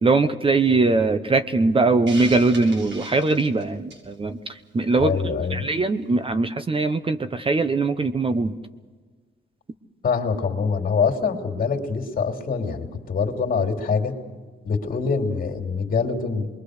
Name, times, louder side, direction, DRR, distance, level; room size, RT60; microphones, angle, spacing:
voice 1, 0.0-5.1 5.5-8.5, right 3 dB, 25° right, 10 dB, 1.0 m, -21 dB
Hiss, 2.1-4.1, right 2 dB, 65° right, 7.3 m, -38 dB
voice 2, 5.0-5.6 10.0-14.1 14.6-16.5, left 5 dB, 45° left, 2 dB, 3.1 m, -24 dB
25.5 x 22.5 x 6.6 m, 1.4 s
cardioid pair, 90°, 20 cm